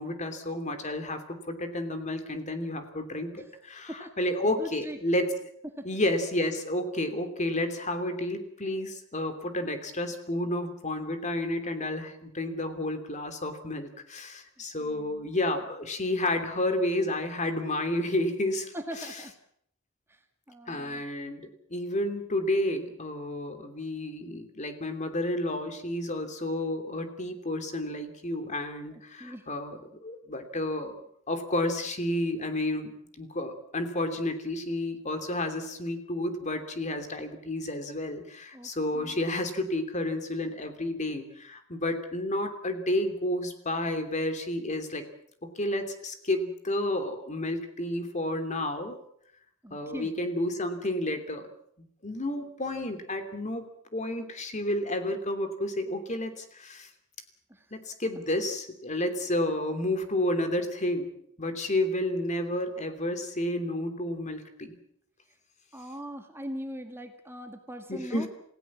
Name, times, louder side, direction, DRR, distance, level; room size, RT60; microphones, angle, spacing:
voice 1, 0.0-5.3 5.8-18.7 20.7-30.9 31.3-32.9 33.2-45.1 45.4-49.0 49.7-51.5 51.8-53.7 53.9-56.9 57.7-64.8 67.9-68.3, left 1 dB, 35° left, 7 dB, 3.0 m, -31 dB
voice 2, 3.9-5.0 5.6-5.9 14.8-15.3 18.7-19.3 20.1-20.2 20.5-21.0 29.2-29.5 38.5-39.2 49.6-50.1 57.5-57.7 65.7-68.3, equal, 10° right, 5 dB, 1.9 m, -41 dB
28.5 x 16.5 x 7.4 m, 0.67 s
head